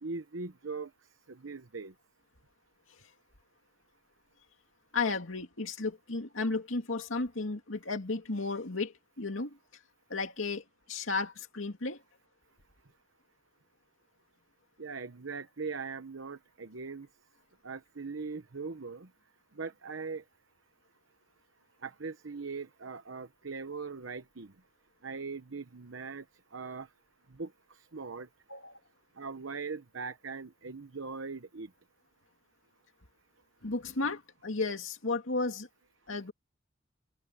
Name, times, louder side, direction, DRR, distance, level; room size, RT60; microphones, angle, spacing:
voice 1, 0.0-1.9 14.8-17.1 17.6-19.1 19.5-20.3 21.8-24.6 25.0-26.9 27.3-28.3 29.1-31.7, right 4 dB, 75° right, 1.0 m, -40 dB
voice 2, 4.9-9.6 10.1-12.0 28.5-28.8 33.6-35.7 36.1-36.3, left 3 dB, 80° left, 2.4 m, -34 dB
head